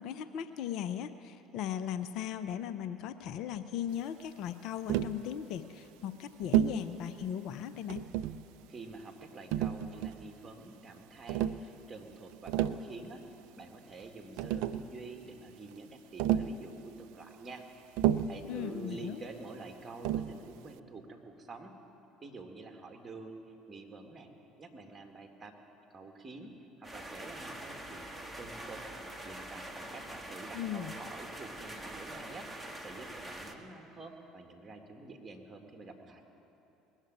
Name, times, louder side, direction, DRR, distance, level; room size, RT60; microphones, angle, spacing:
voice 1, 0.0-8.1 18.5-19.2 30.5-30.9, left 9 dB, 65° left, 10 dB, 0.6 m, -38 dB
Tap, 4.9-5.2 6.5-6.8 7.9-8.5 9.5-10.3 11.3-11.6 12.3-12.9 14.0-14.1 14.4-14.9 16.2-16.6 18.0-18.4 20.0-20.4, right 11 dB, 70° right, 0.4 m, -30 dB
voice 2, 8.7-13.2 13.5-17.6 18.3-21.7 22.2-23.4 23.7-24.3 24.6-25.6 25.9-26.5 26.8-28.8 29.2-36.2, right 3 dB, 25° right, 4 dB, 2.0 m, -48 dB
sound 1, 26.8-33.5, right 1 dB, 5° right, 1.5 m, -44 dB
20.0 x 7.3 x 9.2 m, 2.9 s
hypercardioid pair, 70°, 0 cm